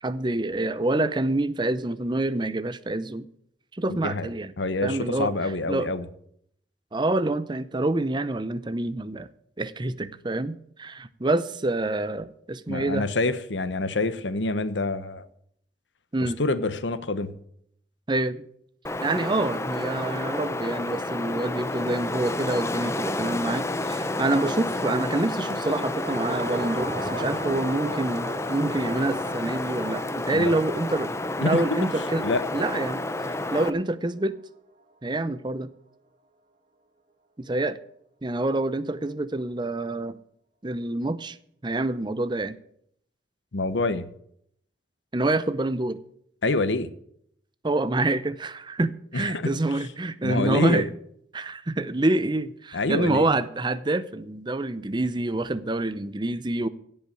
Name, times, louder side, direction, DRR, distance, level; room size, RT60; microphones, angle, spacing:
voice 1, 0.0-3.2 3.7-4.5 4.8-5.9 6.9-9.3 9.6-13.1 16.1-16.4 18.1-18.5 19.0-31.1 31.4-32.3 32.5-33.0 33.5-34.4 35.0-35.7 37.4-37.8 38.2-40.2 40.6-41.4 41.6-42.6 45.1-46.0 47.6-50.9 51.3-56.7, right 2 dB, 25° right, 0.7 m, -27 dB
voice 2, 4.6-6.0 12.7-15.3 16.2-17.3 30.3-30.5 31.4-31.8 32.2-32.5 43.5-44.0 46.4-46.9 49.1-49.5 50.2-50.9 52.7-53.3, left 2 dB, 85° left, 1.0 m, -26 dB
Wind, 18.8-33.7, left 2 dB, 15° left, 0.7 m, -30 dB
sound 1, 25.9-34.4 34.7-34.8, right 2 dB, 40° right, 1.7 m, -40 dB
17.0 x 5.6 x 9.1 m
head